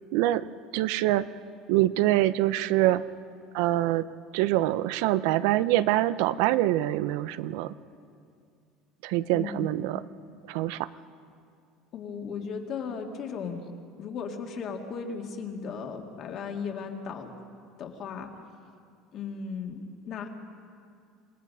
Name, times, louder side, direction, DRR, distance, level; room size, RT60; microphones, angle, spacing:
voice 1, 0.1-0.5 0.7-1.3 1.7-3.0 3.5-4.1 4.3-7.7 9.0-10.0 10.5-10.9, right 15 dB, 75° right, 15 dB, 0.6 m, -25 dB
voice 2, 9.3-9.6 10.9-11.0 11.9-13.7 14.0-17.3 17.8-18.4 19.1-20.3, left 5 dB, 40° left, 3 dB, 2.0 m, -36 dB
27.0 x 18.0 x 5.5 m, 2.3 s
cardioid pair, 155°, 0 cm